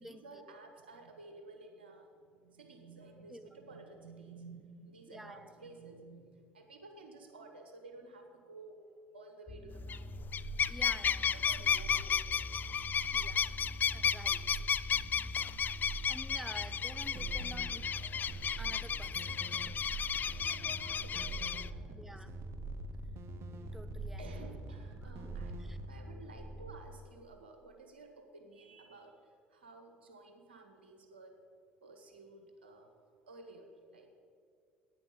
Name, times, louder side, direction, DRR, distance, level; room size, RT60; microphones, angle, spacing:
voice 1, 0.0-8.9 9.1-10.2 11.1-12.2 13.5-16.4 20.4-22.2 24.2-25.6 25.9-31.4 31.8-34.1, right 3 dB, 85° right, 5 dB, 1.3 m, -54 dB
voice 2, 5.1-5.5 10.7-11.7 13.1-13.5 13.9-14.7 16.1-17.9 18.6-19.4 21.9-22.3 23.7-24.3 25.0-25.8, equal, 5° right, 11 dB, 0.7 m, -50 dB
sound 1, 9.5-26.7, right 1 dB, 15° left, 1.6 m, -44 dB
sound 2, 9.8-10.0 10.3-21.7, left 7 dB, 35° left, 0.3 m, -34 dB
sound 3, 17.1-26.0, right 6 dB, 50° right, 0.8 m, -50 dB
9.6 x 9.5 x 7.4 m, 2.2 s
hypercardioid pair, 65°, 6 cm